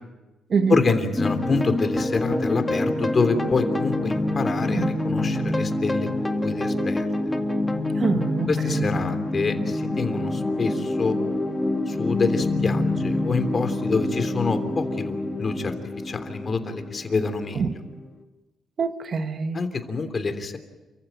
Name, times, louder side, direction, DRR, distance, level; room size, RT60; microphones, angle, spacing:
voice 1, 0.7-7.1 8.5-11.2 11.9-15.7 16.0-17.7 19.5-20.6, left 4 dB, 35° left, 3.2 m, -26 dB
sound 1, 1.2-18.1, left 2 dB, 15° left, 2.2 m, -26 dB
voice 2, 8.0-8.9 17.6-17.7 18.8-19.6, right 5 dB, 50° right, 1.6 m, -25 dB
29.5 x 15.0 x 9.5 m
cardioid pair, 90°, 0 cm